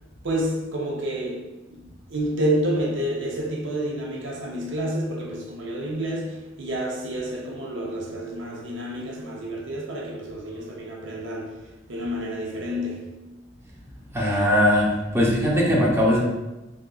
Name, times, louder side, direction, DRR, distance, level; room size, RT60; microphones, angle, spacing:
voice 1, 0.2-13.4, right 1 dB, 85° right, 0.6 m, -29 dB
voice 2, 14.1-16.2, equal, 15° right, 0.7 m, -20 dB
3.6 x 3.6 x 2.3 m
head